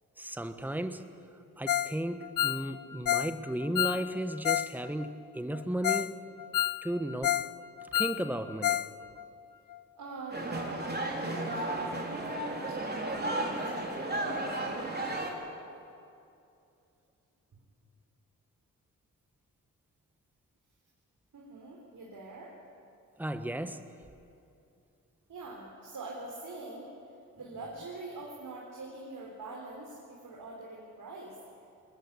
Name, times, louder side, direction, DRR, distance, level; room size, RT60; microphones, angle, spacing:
voice 1, 0.2-1.1 1.6-6.2 6.8-7.4 7.9-8.8 23.2-23.9, right 1 dB, 5° right, 9 dB, 1.4 m, -34 dB
Ringtone, 1.7-2.0 2.2-4.7 5.0-5.1 5.5-5.6 5.8-6.1 6.4-7.5 7.8-8.9 9.2-9.3 9.7-9.8, left 12 dB, 65° left, 0.6 m, -30 dB
voice 2, 9.9-15.2 21.3-22.5 25.3-26.9 27.3-31.4, right 2 dB, 70° right, -3 dB, 4.1 m, -44 dB
sound 1, 10.3-15.3, right 1 dB, 30° right, 3.9 m, -34 dB
21.5 x 20.5 x 8.4 m, 2.6 s
cardioid pair, 60°, 34 cm